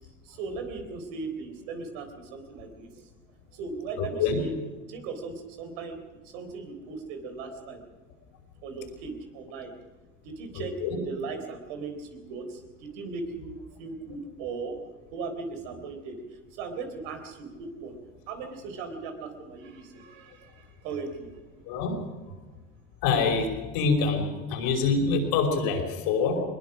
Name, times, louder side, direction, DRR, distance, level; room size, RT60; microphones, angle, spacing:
voice 1, 0.3-2.9 3.5-4.6 4.9-6.0 6.3-7.8 8.6-9.7 10.2-10.7 11.0-14.8 15.1-16.2 16.5-17.9 18.3-21.3, right 4 dB, 75° right, 6 dB, 3.9 m, -38 dB
voice 2, 4.0-4.4 10.5-11.0 21.7-22.0 23.0-23.5 23.7-26.4, left 4 dB, 70° left, 3 dB, 5.4 m, -25 dB
21.5 x 20.5 x 6.3 m, 1.2 s
hypercardioid pair, 85°, 39 cm